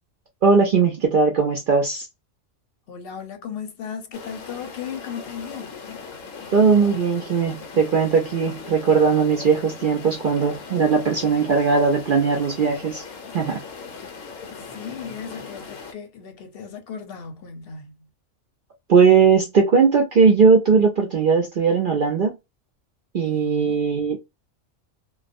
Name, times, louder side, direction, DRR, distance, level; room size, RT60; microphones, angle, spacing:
voice 1, 0.4-2.1 6.5-13.0 13.3-13.6 18.9-22.3 23.1-24.2, right 5 dB, 60° right, 0.5 m, -18 dB
voice 2, 2.9-5.7 14.6-18.1 23.2-23.8, left 6 dB, 55° left, 0.8 m, -36 dB
sound 1, 4.1-15.9, left 5 dB, 80° left, 1.0 m, -39 dB
2.3 x 2.1 x 2.5 m
omnidirectional pair, 1.4 m